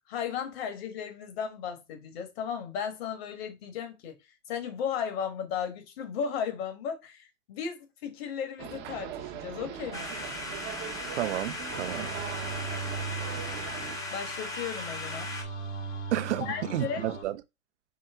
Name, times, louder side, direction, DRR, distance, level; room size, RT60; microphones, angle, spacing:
voice 1, 0.1-4.2 4.5-10.3 14.1-15.3 16.4-17.1, left 7 dB, 55° left, 1.4 m, -35 dB
sound 1, 8.6-14.0, right 9 dB, 30° right, 0.7 m, -40 dB
sound 2, 9.9-15.4, left 2 dB, 10° left, 0.6 m, -38 dB
voice 2, 11.2-12.1 16.1-17.4, right 13 dB, 65° right, 0.5 m, -31 dB
sound 3, 11.7-17.2, right 3 dB, 75° left, 2.0 m, -39 dB
5.5 x 2.1 x 3.5 m
hypercardioid pair, 120°, 37 cm